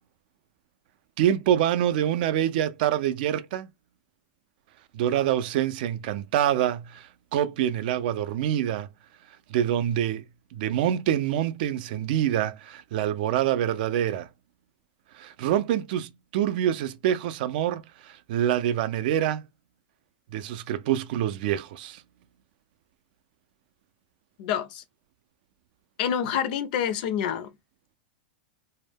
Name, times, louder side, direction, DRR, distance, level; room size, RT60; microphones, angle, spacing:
voice 1, 1.2-3.7 4.9-8.9 9.5-10.2 10.5-14.3 15.2-19.4 20.3-22.0, right 11 dB, 55° right, 0.4 m, -26 dB
voice 2, 24.4-24.8 26.0-27.5, left 9 dB, 55° left, 0.4 m, -27 dB
2.1 x 2.1 x 3.3 m
supercardioid pair, 150°, 6 cm